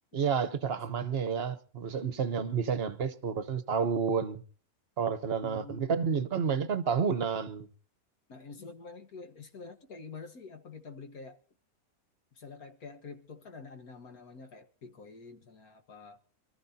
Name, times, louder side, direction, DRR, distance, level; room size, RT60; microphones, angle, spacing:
voice 1, 0.1-4.4 5.0-7.7, right 6 dB, 45° right, 1.0 m, -30 dB
voice 2, 5.4-6.3 8.3-11.4 12.3-16.2, left 4 dB, 75° left, 2.0 m, -47 dB
27.0 x 14.0 x 2.8 m
omnidirectional pair, 1.6 m